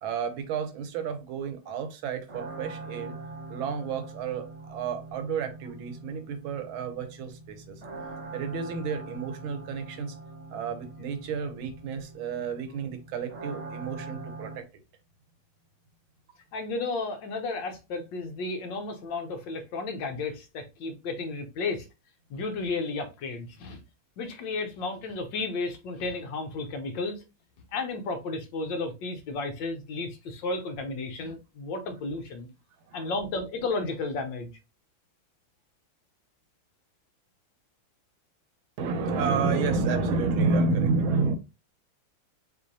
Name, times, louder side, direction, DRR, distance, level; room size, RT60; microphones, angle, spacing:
voice 1, 0.0-3.2 3.5-7.8 8.3-10.1 10.5-14.6 32.9-33.0 38.8-41.4, right 4 dB, 80° right, 1.6 m, -30 dB
sound 1, 2.3-14.6, right 2 dB, 45° right, 1.1 m, -43 dB
voice 2, 16.5-21.8 22.3-23.8 24.2-27.2 27.7-32.5 32.9-34.5, left 3 dB, 70° left, 1.5 m, -33 dB
6.2 x 2.7 x 2.7 m
omnidirectional pair, 2.2 m